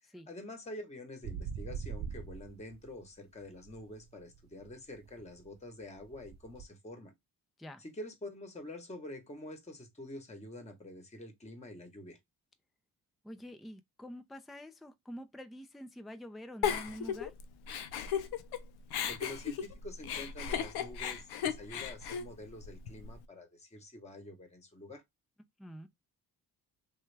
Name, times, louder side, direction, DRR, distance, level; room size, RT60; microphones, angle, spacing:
voice 1, 0.0-7.1 7.8-12.2 19.0-25.0, left 1 dB, 15° left, 1.0 m, -47 dB
sound 1, 1.2-3.1 3.4-6.6, right 6 dB, 45° right, 0.6 m, -44 dB
voice 2, 13.2-17.3 25.6-25.9, equal, ahead, 0.4 m, -47 dB
Giggle, 16.6-18.6 18.9-23.1, left 8 dB, 80° left, 0.6 m, -35 dB
3.1 x 2.3 x 3.2 m
cardioid pair, 85°, 38 cm